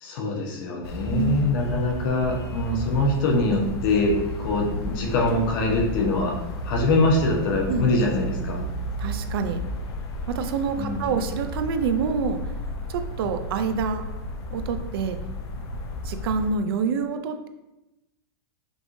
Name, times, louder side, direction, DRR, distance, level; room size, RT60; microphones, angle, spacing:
voice 1, 0.0-6.4 6.6-8.6 10.8-11.1, left 2 dB, 55° left, -1 dB, 1.0 m, -23 dB
sound 1, 0.8-16.5, left 1 dB, 85° left, 0.7 m, -33 dB
voice 2, 1.1-1.5 7.7-7.9 9.0-9.6 10.3-12.4 12.9-14.1 14.5-15.2 16.0-17.5, right 5 dB, 70° right, 8 dB, 0.4 m, -27 dB
5.2 x 3.0 x 2.6 m, 0.98 s
supercardioid pair, 155°, 13 cm